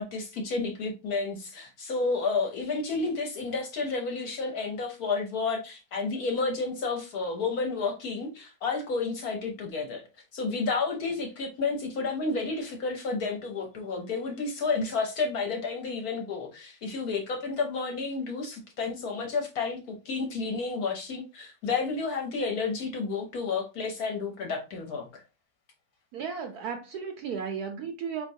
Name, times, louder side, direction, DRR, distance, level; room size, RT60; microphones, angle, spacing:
voice 1, 0.0-10.0 10.3-25.2, left 4 dB, 60° left, 1.1 m, -31 dB
voice 2, 26.1-28.3, right 6 dB, 70° right, 1.0 m, -34 dB
4.4 x 3.1 x 2.6 m
omnidirectional pair, 2.1 m